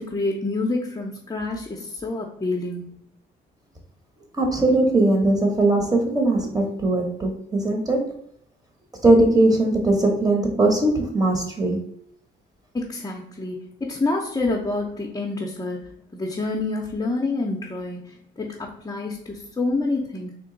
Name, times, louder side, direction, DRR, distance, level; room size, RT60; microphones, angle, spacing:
voice 1, 0.0-2.9 12.7-20.3, left 2 dB, 20° left, -1 dB, 0.6 m, -28 dB
voice 2, 4.4-8.1 9.0-11.9, right 2 dB, 20° right, 3 dB, 1.1 m, -20 dB
3.8 x 2.5 x 3.8 m, 0.70 s
cardioid pair, 90°, 20 cm